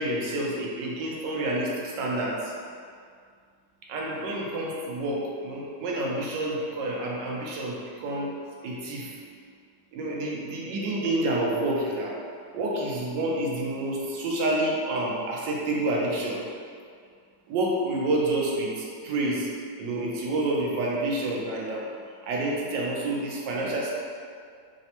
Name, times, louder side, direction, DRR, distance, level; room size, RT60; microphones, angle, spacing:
voice 1, 0.0-2.5 3.9-8.3 8.6-9.1 9.9-12.2 12.5-16.4 17.5-19.5 19.8-21.9 22.2-23.9, right 1 dB, 90° right, -3 dB, 1.3 m, -28 dB
3.4 x 2.0 x 2.7 m, 2.2 s
omnidirectional pair, 1.9 m